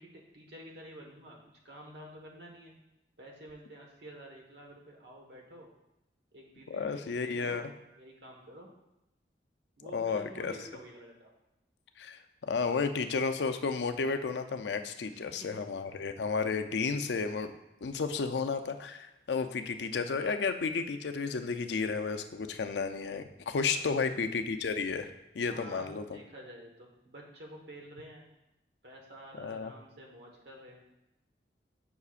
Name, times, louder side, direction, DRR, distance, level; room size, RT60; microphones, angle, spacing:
voice 1, 0.0-1.4 1.6-2.7 3.2-5.7 6.3-7.7 8.0-8.7 9.8-11.3 15.1-15.5 23.7-24.1 25.5-28.3 28.8-30.8, right 1 dB, 75° right, 0 dB, 1.3 m, -50 dB
voice 2, 6.7-7.7 9.9-10.5 12.0-17.5 17.8-26.2 29.4-29.7, left 5 dB, 75° left, 8 dB, 0.5 m, -32 dB
8.2 x 5.5 x 2.4 m, 0.90 s
head